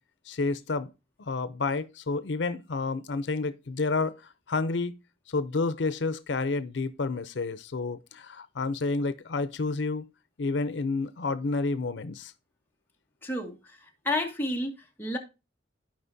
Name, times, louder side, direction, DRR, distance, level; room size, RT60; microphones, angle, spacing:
voice 1, 0.3-0.9 1.2-4.2 4.5-4.9 5.3-10.0 10.4-12.3, left 3 dB, 85° left, 0.6 m, -30 dB
voice 2, 13.2-13.6 14.0-15.2, left 1 dB, 10° left, 1.9 m, -30 dB
14.5 x 5.1 x 2.7 m
head